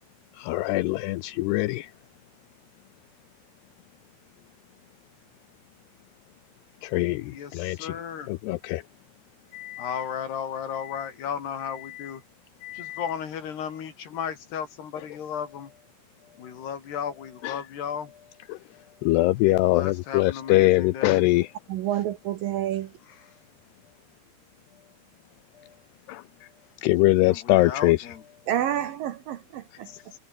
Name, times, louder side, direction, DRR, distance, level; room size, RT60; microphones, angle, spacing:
voice 1, 0.4-1.9 6.8-7.9 8.3-8.8 9.5-10.0 10.8-11.1 11.8-12.1 12.6-13.1 17.4-17.6 18.5-18.6 19.0-21.5 26.1-26.2 26.8-28.1, left 18 dB, 85° left, 2.6 m, -23 dB
voice 2, 7.2-8.3 9.8-12.2 12.7-15.8 16.2-18.4 18.7-19.0 19.4-21.3 23.1-23.4 25.6-25.8 27.2-28.2 28.6-28.8 29.8-30.2, left 8 dB, 65° left, 5.1 m, -35 dB
voice 3, 21.7-22.9 28.5-29.9, right 11 dB, 70° right, 2.3 m, -28 dB
omnidirectional pair, 5.1 m